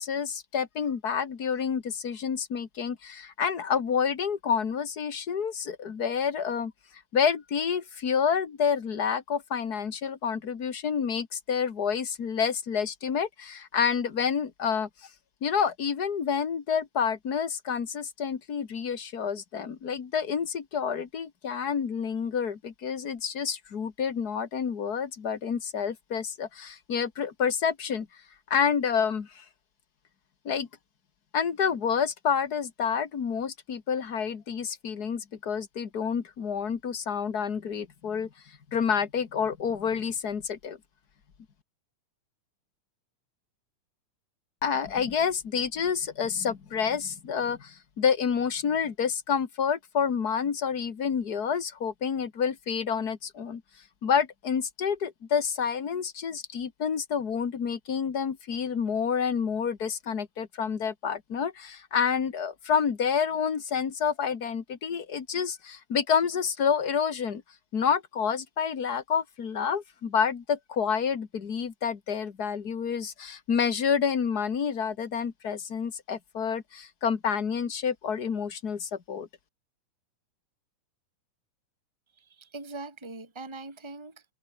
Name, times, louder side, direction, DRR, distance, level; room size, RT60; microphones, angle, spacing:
voice 1, 0.0-6.7 7.1-14.9 15.4-28.1 28.5-29.4 30.4-30.7 31.3-38.3 38.7-40.8 44.6-53.6 54.0-67.4 67.7-79.3, left 7 dB, 35° left, 1.7 m, -28 dB
voice 2, 82.1-84.2, right 3 dB, 10° right, 3.3 m, -42 dB
omnidirectional pair, 3.7 m